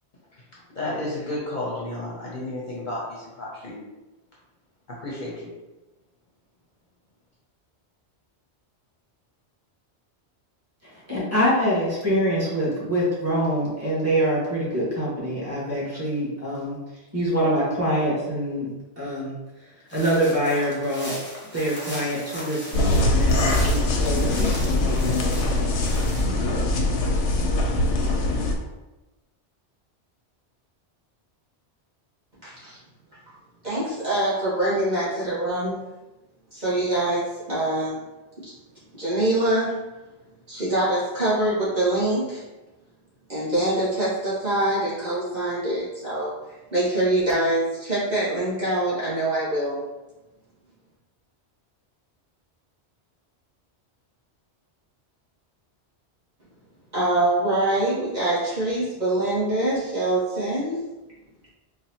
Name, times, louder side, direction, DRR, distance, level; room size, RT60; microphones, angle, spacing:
voice 1, 0.5-3.8 4.9-5.5, left 1 dB, 50° left, -5 dB, 0.7 m, -32 dB
voice 2, 10.8-16.8 17.1-18.7 19.0-19.3 19.9-21.1 21.5-25.6, equal, 15° right, -8 dB, 1.3 m, -25 dB
sound 1, 19.9-26.3, left 1 dB, 10° left, 0.7 m, -38 dB
sound 2, 22.7-28.5, left 2 dB, 85° left, 0.9 m, -22 dB
voice 3, 32.4-32.8 33.6-35.8 36.5-38.0 38.4-38.5 38.9-39.8 40.5-42.4 43.3-46.3 46.7-49.8 56.9-60.8, right 1 dB, 40° right, -9 dB, 1.3 m, -24 dB
4.0 x 2.5 x 2.8 m, 1.1 s
omnidirectional pair, 1.2 m